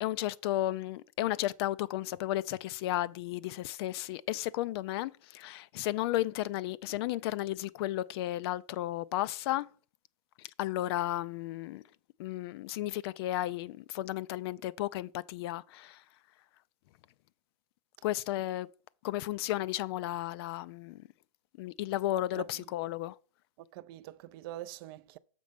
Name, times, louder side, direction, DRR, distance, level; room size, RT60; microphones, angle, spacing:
voice 1, 0.0-9.7 10.6-11.8 12.2-16.0 18.0-18.7 19.0-21.0 21.6-23.1, left 14 dB, 45° left, 0.4 m, -33 dB
voice 2, 22.2-22.6 23.7-25.2, right 14 dB, 40° right, 0.4 m, -44 dB
6.7 x 5.1 x 5.0 m
hypercardioid pair, 135°, 18 cm